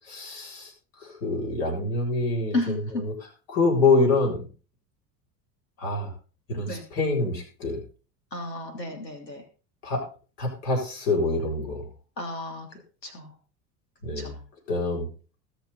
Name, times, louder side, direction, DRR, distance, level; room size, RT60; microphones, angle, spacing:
voice 1, 0.1-0.7 1.2-2.6 3.0-3.1 3.5-4.4 5.8-6.1 6.5-7.8 9.8-10.0 10.4-11.8 14.0-14.3 14.7-15.1, left 3 dB, 60° left, 0 dB, 7.6 m, -25 dB
voice 2, 2.5-3.0 6.7-6.8 8.3-9.4 12.2-12.7 13.0-13.3 14.2-14.4, left 2 dB, 85° left, 4 dB, 3.3 m, -32 dB
21.0 x 7.1 x 4.2 m, 0.37 s
figure-of-eight pair, 75°, 48 cm